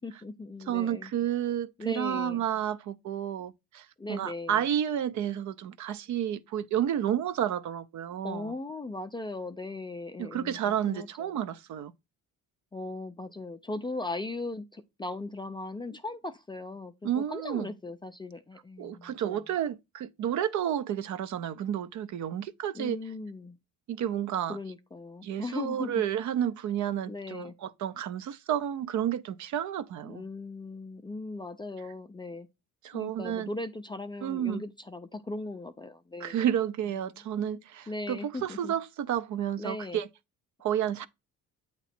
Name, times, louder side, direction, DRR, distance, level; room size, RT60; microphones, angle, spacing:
voice 1, 0.0-1.1 1.8-2.4 4.0-4.6 8.2-11.3 12.7-19.4 22.7-23.6 24.5-26.0 27.1-27.5 30.0-32.5 32.9-36.4 37.9-38.7 39.6-40.0, left 2 dB, 15° left, 0.3 m, -38 dB
voice 2, 0.7-8.5 10.2-11.9 17.0-17.7 18.8-23.0 23.9-24.6 25.2-30.2 32.8-33.5 34.2-34.6 36.2-40.1 40.6-41.1, right 10 dB, 55° right, 0.5 m, -31 dB
8.1 x 3.0 x 4.2 m
cardioid pair, 130°, 34 cm